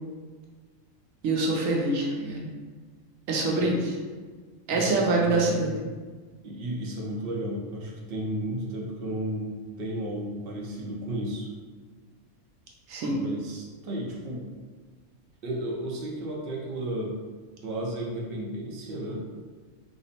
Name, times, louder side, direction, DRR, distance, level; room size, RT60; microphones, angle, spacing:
voice 1, 1.2-2.5 3.3-3.7 4.7-5.7 12.9-13.2, right 2 dB, 85° right, -2 dB, 1.0 m, -25 dB
voice 2, 3.5-3.8 4.7-5.9 6.4-11.5 13.1-14.4 15.4-17.2 17.6-19.3, right 1 dB, 55° right, -2 dB, 0.8 m, -33 dB
3.6 x 2.0 x 4.1 m, 1.4 s
omnidirectional pair, 1.4 m